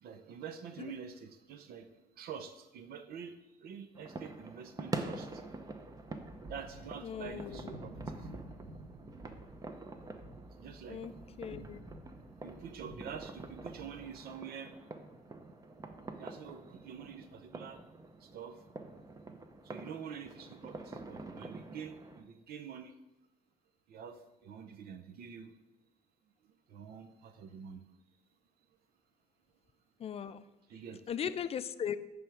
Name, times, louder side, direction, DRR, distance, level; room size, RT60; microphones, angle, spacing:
voice 1, 0.0-5.4 6.4-8.3 10.6-11.8 12.4-14.7 16.2-17.8 18.2-18.6 19.6-22.9 23.9-25.5 26.7-27.8 30.7-31.0, right 7 dB, 65° right, 9 dB, 0.6 m, -47 dB
sound 1, 3.9-22.2, right 3 dB, 20° right, 0.7 m, -46 dB
sound 2, 5.3-14.2, right 1 dB, 45° right, 2.5 m, -52 dB
voice 2, 7.0-7.8 10.9-11.1 11.4-11.8 30.0-30.4 31.1-32.0, left 8 dB, 35° left, 13 dB, 0.4 m, -38 dB
9.7 x 3.5 x 5.9 m, 0.95 s
cardioid pair, 110°, 17 cm